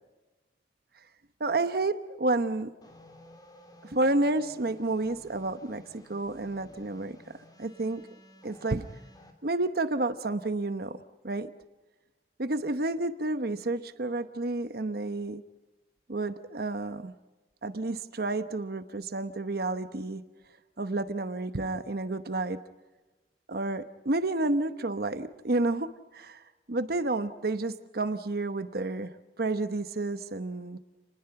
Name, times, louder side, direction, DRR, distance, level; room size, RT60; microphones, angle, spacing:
voice 1, 1.4-2.7 3.8-7.2 7.6-8.0 8.4-8.9 9.4-11.5 12.4-15.4 16.1-17.1 17.6-20.2 20.8-22.6 23.5-26.4 26.7-30.8, right 2 dB, 60° right, 10 dB, 1.0 m, -30 dB
sound 1, 2.8-9.3, left 1 dB, 25° left, 3.5 m, -55 dB
30.0 x 20.5 x 5.9 m, 1.1 s
head